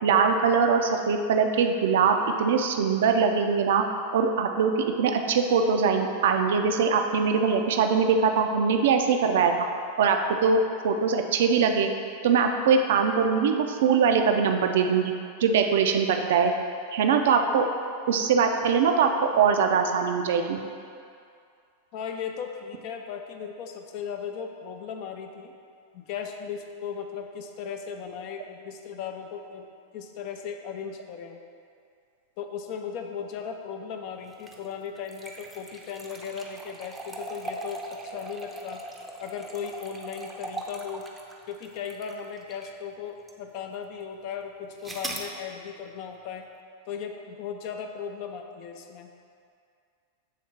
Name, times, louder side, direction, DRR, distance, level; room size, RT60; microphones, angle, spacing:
voice 1, 0.0-3.8 4.1-9.7 10.0-11.9 12.2-15.1 15.4-16.5 16.9-17.7 18.1-20.6, right 6 dB, 55° right, 5 dB, 0.4 m, -22 dB
voice 2, 21.9-25.5 25.9-29.7 29.9-31.4 32.4-38.8 39.2-41.1 41.5-46.5 46.9-49.1, left 7 dB, 45° left, 4 dB, 0.5 m, -37 dB
sound 1, 34.3-42.8 43.3-43.4 44.8-45.3, right 2 dB, 10° right, 0.6 m, -40 dB
7.5 x 3.5 x 4.3 m, 2.3 s
figure-of-eight pair, 90°, 0 cm